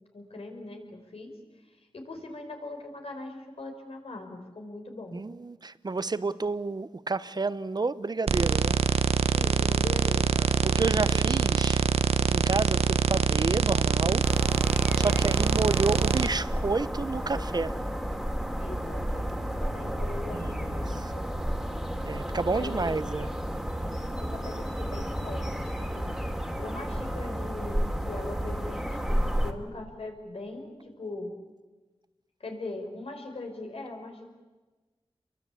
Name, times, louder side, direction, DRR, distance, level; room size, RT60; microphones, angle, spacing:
voice 1, 0.1-1.3 1.9-5.2 9.3-11.3 18.6-21.3 22.5-23.3 23.8-26.1 26.6-31.3 32.4-34.3, left 2 dB, 70° left, 5.2 m, -41 dB
voice 2, 5.1-8.8 10.4-11.8 12.3-14.3 15.0-17.8 20.3-20.8 22.1-23.3, right 3 dB, 40° right, 0.9 m, -30 dB
sound 1, 8.3-16.3, right 6 dB, 90° right, 0.8 m, -24 dB
sound 2, 14.2-29.5, equal, ahead, 2.7 m, -32 dB
29.5 x 23.5 x 8.6 m
wide cardioid pair, 100°, 10 cm